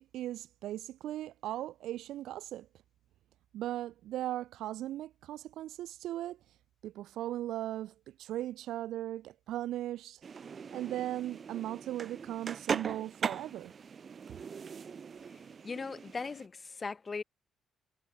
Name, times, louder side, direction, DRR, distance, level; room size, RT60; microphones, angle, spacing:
voice 1, 0.0-2.7 3.5-6.4 6.8-10.2 10.7-13.7, right 13 dB, 85° right, 2.8 m, -38 dB
sound 1, 10.2-16.5, right 6 dB, 45° right, 1.4 m, -40 dB
voice 2, 15.6-17.2, left 4 dB, 30° left, 4.2 m, -38 dB
cardioid pair, 90°, 0 cm